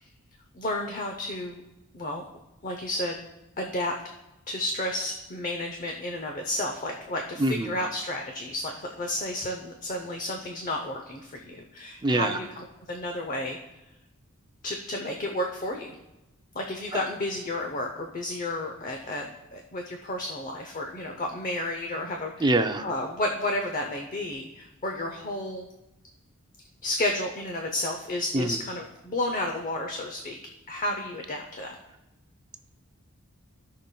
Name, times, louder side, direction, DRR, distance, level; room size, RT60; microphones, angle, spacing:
voice 1, 0.5-1.6 1.9-2.2 2.6-3.2 3.6-3.9 4.5-13.6 14.6-16.0 16.5-22.5 22.8-25.7 26.8-30.4 30.7-31.7, left 1 dB, 40° left, 3 dB, 0.7 m, -32 dB
voice 2, 7.4-7.7 12.0-12.4 22.4-22.8 28.3-28.6, right 2 dB, 20° right, 7 dB, 0.5 m, -24 dB
16.5 x 5.7 x 2.3 m, 0.99 s
head